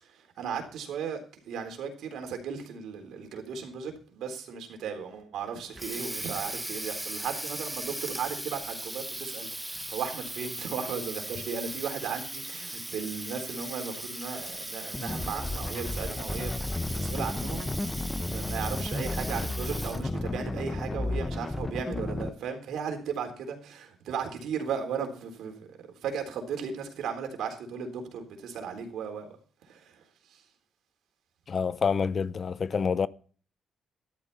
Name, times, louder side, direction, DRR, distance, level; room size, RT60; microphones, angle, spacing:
voice 1, 0.0-29.3 29.6-30.4, right 6 dB, 80° right, 3.8 m, -36 dB
Water tap faucet, 5.5-20.2, right 1 dB, 10° right, 1.3 m, -38 dB
sound 1, 14.9-22.3, left 2 dB, 15° left, 0.9 m, -33 dB
voice 2, 31.5-33.1, left 6 dB, 45° left, 0.7 m, -27 dB
14.0 x 12.0 x 4.2 m
cardioid pair, 90°, 0 cm